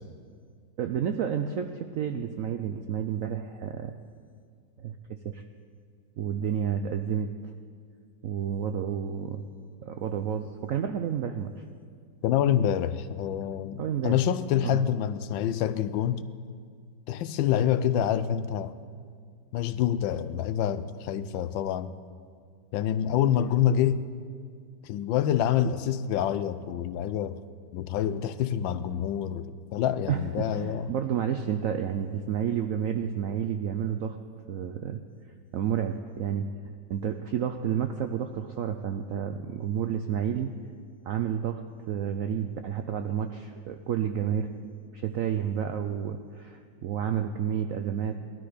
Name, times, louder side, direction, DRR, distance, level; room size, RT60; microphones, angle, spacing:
voice 1, 0.8-4.0 4.8-5.4 6.2-7.3 8.2-9.4 9.8-11.6 13.8-14.3 14.7-14.8 30.1-34.2 34.5-35.0 35.5-40.5 41.1-44.5 44.9-48.2, right 8 dB, 80° right, 0.7 m, -30 dB
voice 2, 12.2-16.3 17.1-18.7 19.5-21.9 22.7-24.0 24.8-27.4 27.7-30.9, left 10 dB, 85° left, 1.4 m, -27 dB
18.0 x 12.5 x 5.0 m
omnidirectional pair, 2.0 m